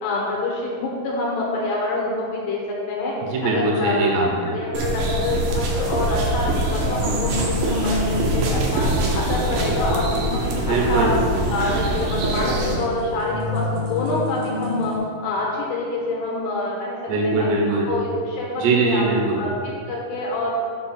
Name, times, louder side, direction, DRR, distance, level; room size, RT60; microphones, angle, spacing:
voice 1, 0.0-2.6 2.9-3.1 3.4-4.1 4.5-8.9 9.1-10.4 10.7-11.2 11.5-14.9 15.2-17.0 17.2-17.5 17.9-19.0 19.4-20.6, left 2 dB, 75° left, -3 dB, 2.5 m, -26 dB
voice 2, 3.3-4.6 10.7-11.1 17.1-17.9 18.6-19.4, right 3 dB, 70° right, -1 dB, 2.8 m, -21 dB
sound 1, 4.7-12.7, right 1 dB, 85° right, 2.1 m, -24 dB
sound 2, 6.7-15.0, left 3 dB, 55° left, 3.0 m, -29 dB
6.8 x 4.4 x 5.8 m, 2.2 s
omnidirectional pair, 5.9 m